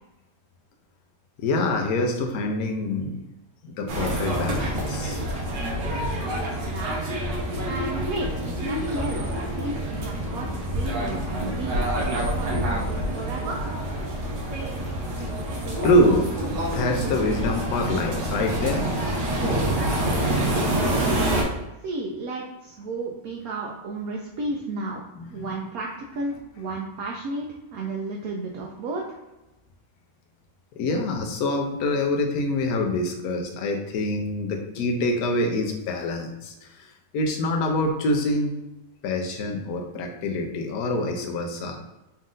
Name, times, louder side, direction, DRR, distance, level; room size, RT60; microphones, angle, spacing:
voice 1, 1.4-3.2 3.6-5.2 15.8-18.9 25.2-25.5 30.8-36.9 37.1-38.5 39.0-41.8, left 1 dB, 70° left, 3 dB, 1.0 m, -25 dB
sound 1, 3.9-21.4, right 1 dB, 90° right, 1.6 m, -27 dB
voice 2, 5.8-7.0 7.6-13.6 20.0-21.1 21.8-25.0 25.3-25.9 26.1-29.2, right 2 dB, 70° right, -1 dB, 0.9 m, -33 dB
4.2 x 2.5 x 3.7 m, 0.99 s
omnidirectional pair, 1.8 m